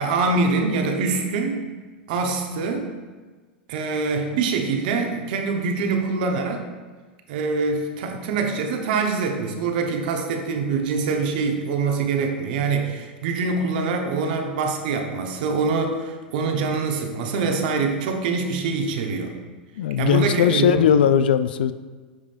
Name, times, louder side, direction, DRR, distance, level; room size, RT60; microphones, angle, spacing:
voice 1, 0.0-1.7 2.1-2.9 3.7-6.7 7.3-19.3 20.0-20.9, right 4 dB, 60° right, 3 dB, 1.0 m, -24 dB
voice 2, 19.8-21.7, left 9 dB, 70° left, 12 dB, 0.3 m, -18 dB
9.5 x 5.0 x 2.6 m, 1.4 s
hypercardioid pair, 95°, 5 cm